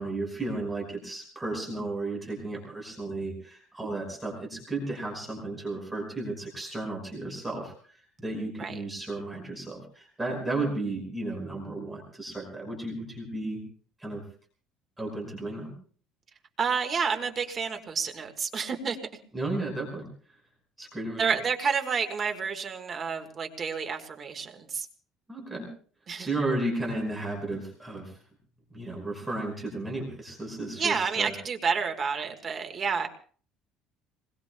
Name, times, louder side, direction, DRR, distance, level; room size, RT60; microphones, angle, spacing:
voice 1, 0.0-13.6 14.0-14.2 15.0-15.7 19.3-20.1 20.8-21.2 25.3-25.7 26.2-28.2 28.7-31.3, right 2 dB, 10° right, 0 dB, 5.3 m, -34 dB
voice 2, 16.6-19.0 21.2-24.9 26.1-26.3 30.8-33.1, right 5 dB, 30° right, 5 dB, 1.5 m, -29 dB
28.5 x 21.0 x 2.2 m, 0.44 s
cardioid pair, 160°, 0 cm